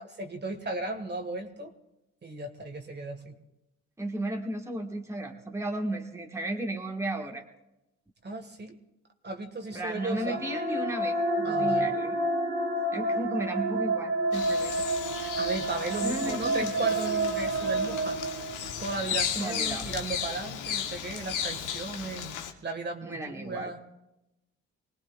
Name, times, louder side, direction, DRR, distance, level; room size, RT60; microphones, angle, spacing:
voice 1, 0.2-1.7 2.2-3.3 8.2-8.7 9.2-10.4 11.4-11.9 15.2-18.2 18.8-23.8, right 2 dB, 35° right, 5 dB, 1.6 m, -35 dB
voice 2, 4.0-7.4 9.7-12.2 12.9-14.7 16.0-16.7 19.3-19.9 23.0-23.7, right 1 dB, 10° right, 1 dB, 1.5 m, -34 dB
sound 1, 9.8-19.0, right 2 dB, 65° right, 2.4 m, -29 dB
Bird vocalization bird call bird song, 14.3-22.5, left 8 dB, 90° left, 1.3 m, -35 dB
25.0 x 18.0 x 2.4 m, 0.92 s
cardioid pair, 90°, 30 cm